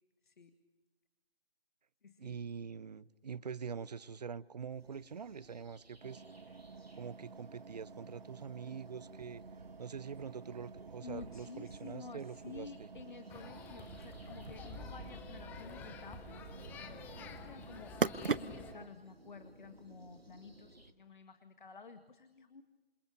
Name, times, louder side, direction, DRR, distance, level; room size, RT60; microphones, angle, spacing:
voice 1, 0.2-0.6 2.0-2.4 11.0-16.5 17.1-22.6, left 4 dB, 55° left, 9 dB, 2.0 m, -51 dB
voice 2, 2.2-6.2 6.9-9.4 9.8-12.9, right 6 dB, 45° right, 21 dB, 0.9 m, -44 dB
sound 1, 4.7-20.9, right 1 dB, 90° right, 2.6 m, -62 dB
sound 2, 6.0-18.9, right 5 dB, 60° right, 1.2 m, -44 dB
sound 3, 13.3-18.7, left 6 dB, 5° left, 0.9 m, -50 dB
28.0 x 26.5 x 6.9 m, 1.1 s
figure-of-eight pair, 145°, 30 cm